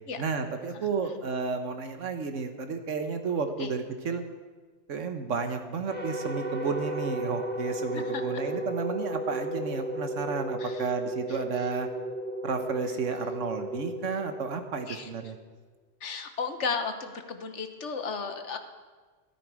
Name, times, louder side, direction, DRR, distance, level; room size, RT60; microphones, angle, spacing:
voice 1, 0.2-4.2 4.9-11.9 12.4-15.4, right 5 dB, 80° right, 7 dB, 1.5 m, -32 dB
sound 1, 5.9-15.2, right 1 dB, 10° left, 1.6 m, -34 dB
voice 2, 7.9-8.2 10.6-10.9 11.3-11.4 14.9-15.1 16.0-18.6, left 5 dB, 70° left, 7 dB, 1.4 m, -34 dB
13.5 x 13.5 x 4.9 m, 1.4 s
omnidirectional pair, 1.3 m